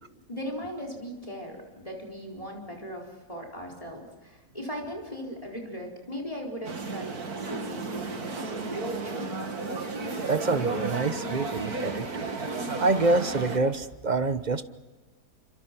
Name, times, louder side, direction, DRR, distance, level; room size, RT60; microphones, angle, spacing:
voice 1, 0.3-7.2 7.5-9.3, equal, 20° left, -1 dB, 4.3 m, -38 dB
sound 1, 6.6-13.6, right 3 dB, 60° right, 2.5 m, -33 dB
sound 2, 8.6-13.7, right 1 dB, 75° left, 7.5 m, -45 dB
voice 2, 10.3-12.1 12.8-14.6, right 3 dB, 35° right, 11 dB, 0.9 m, -26 dB
29.5 x 26.5 x 6.0 m, 1.3 s
omnidirectional pair, 1.8 m